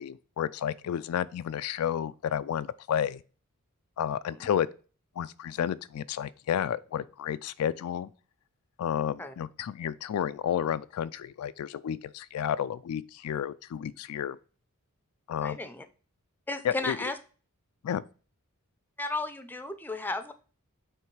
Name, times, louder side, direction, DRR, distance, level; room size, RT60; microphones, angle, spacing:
voice 1, 0.0-3.2 4.0-4.7 5.2-8.1 8.8-14.4 15.3-15.6 16.6-17.1 17.8-18.0, left 9 dB, 75° left, 0.3 m, -31 dB
voice 2, 15.4-15.8 16.5-17.2 19.0-20.3, left 2 dB, 10° left, 0.6 m, -34 dB
7.9 x 3.2 x 4.6 m
head